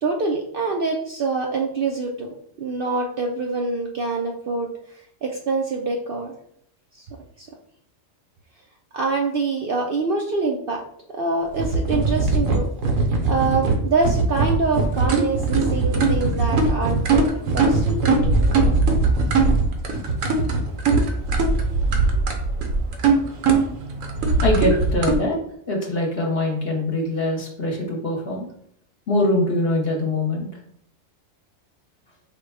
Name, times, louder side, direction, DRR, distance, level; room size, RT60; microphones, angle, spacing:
voice 1, 0.0-4.7 5.2-6.3 6.9-7.1 7.4-7.5 8.9-10.8 11.1-12.7 13.2-18.5, right 3 dB, 60° right, 1 dB, 0.6 m, -25 dB
sound 1, 11.5-25.2, right 3 dB, 80° right, 1.2 m, -20 dB
voice 2, 24.4-25.4 25.7-28.5 29.1-30.5, left 1 dB, 50° left, 0 dB, 1.2 m, -23 dB
4.6 x 2.2 x 4.6 m, 0.66 s
omnidirectional pair, 1.3 m